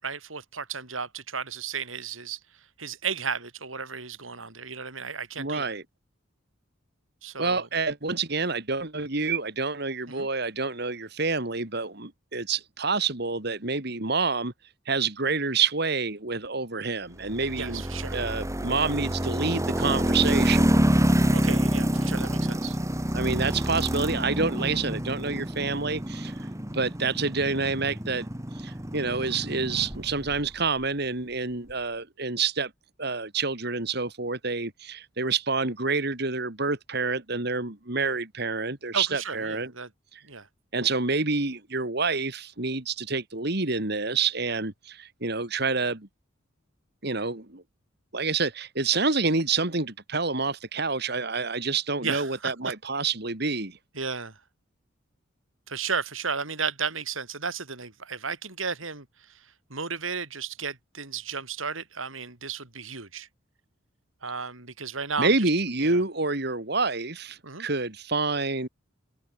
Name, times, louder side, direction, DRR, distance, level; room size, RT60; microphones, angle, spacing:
voice 1, 0.0-2.4 2.8-5.7 7.2-7.7 10.1-10.3 17.6-18.2 21.3-22.8 38.9-39.9 40.2-40.5 52.0-52.5 53.9-54.4 55.7-59.1 59.7-63.3 64.2-65.5 65.8-66.0 67.4-67.7, right 5 dB, 90° right, 5.0 m, -34 dB
voice 2, 5.4-5.8 7.4-14.5 14.9-17.8 18.1-20.7 23.1-26.5 26.7-28.3 28.5-32.7 33.0-39.7 40.1-40.2 40.7-46.1 47.0-47.6 48.1-53.8 65.2-68.7, right 4 dB, 55° right, 2.8 m, -28 dB
sound 1, 17.3-30.5, equal, 15° right, 2.0 m, -27 dB
head